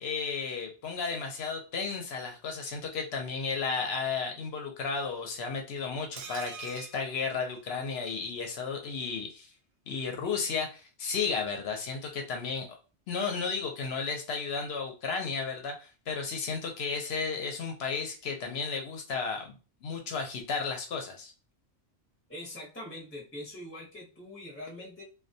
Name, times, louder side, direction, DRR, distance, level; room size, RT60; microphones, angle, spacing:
voice 1, 0.0-9.5 9.9-12.7 13.1-21.3, left 5 dB, 65° left, 3 dB, 0.8 m, -33 dB
sound 1, 6.2-8.1 8.4-8.5 8.8-8.9, right 5 dB, 80° right, 0.9 m, -45 dB
voice 2, 22.3-25.0, left 1 dB, 15° left, -3 dB, 0.7 m, -43 dB
2.2 x 2.2 x 2.6 m, 0.33 s
omnidirectional pair, 1.2 m